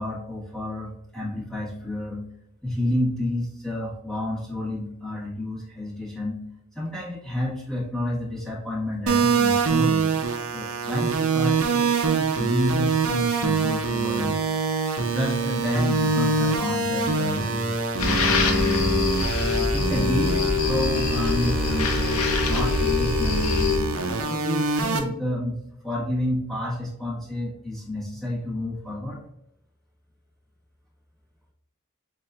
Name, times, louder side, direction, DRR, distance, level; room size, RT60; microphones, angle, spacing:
voice 1, 0.0-2.2 2.6-6.4 6.7-10.0 10.5-14.4 15.0-19.1 19.6-22.2 22.5-23.8 24.3-29.2, left 1 dB, ahead, -7 dB, 1.3 m, -29 dB
sound 1, 9.1-25.0, right 4 dB, 65° right, 0.6 m, -25 dB
sound 2, 18.0-23.8, left 4 dB, 75° left, 0.7 m, -24 dB
7.2 x 2.5 x 2.4 m, 0.76 s
head